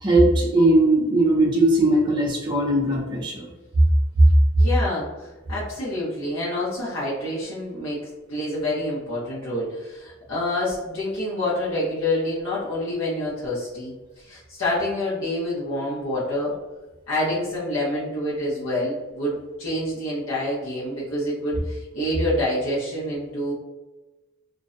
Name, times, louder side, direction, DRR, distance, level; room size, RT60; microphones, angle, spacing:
voice 1, 0.0-3.5, right 1 dB, 20° right, -5 dB, 0.4 m, -19 dB
voice 2, 4.6-16.6 17.1-23.5, left 1 dB, 85° left, -8 dB, 0.8 m, -27 dB
2.4 x 2.1 x 2.5 m, 1.1 s
head